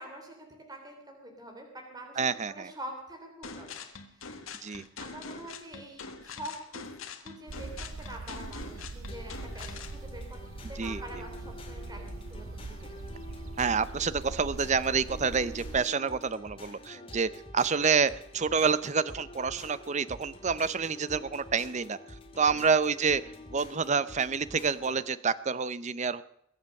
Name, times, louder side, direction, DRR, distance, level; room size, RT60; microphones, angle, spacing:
voice 1, 0.0-4.5 5.0-6.9 7.2-7.7 8.0-10.4 10.7-13.1 16.9-17.2 22.4-22.7, right 1 dB, 20° right, 2 dB, 3.2 m, -46 dB
voice 2, 2.2-2.7 4.6-4.8 10.8-11.0 13.6-22.0 22.4-23.2 23.5-26.2, right 5 dB, 35° right, 16 dB, 0.6 m, -28 dB
sound 1, 3.4-10.0, left 5 dB, 85° left, 1.6 m, -43 dB
sound 2, 7.5-15.8, right 3 dB, 85° right, 0.7 m, -42 dB
sound 3, 9.1-25.1, left 1 dB, 25° left, 2.5 m, -48 dB
22.0 x 8.0 x 6.5 m, 0.75 s
head